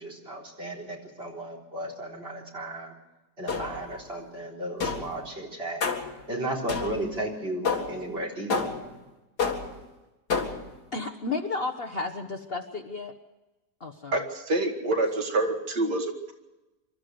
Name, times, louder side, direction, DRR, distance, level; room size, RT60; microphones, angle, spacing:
voice 1, 0.0-2.9 3.4-5.8 6.3-8.6, right 1 dB, 35° right, -1 dB, 4.1 m, -34 dB
sound 1, 3.5-4.0 4.8-5.2 5.8-6.2 6.7-7.2 7.7-8.1 8.5-9.0 9.4-9.9 10.3-10.8, left 4 dB, 75° left, 2.7 m, -30 dB
voice 2, 10.9-13.1 13.8-14.2, left 3 dB, 40° left, 6 dB, 1.3 m, -32 dB
voice 3, 14.1-16.3, right 2 dB, 80° right, 3 dB, 2.8 m, -27 dB
25.5 x 13.0 x 7.9 m, 1.1 s
omnidirectional pair, 1.8 m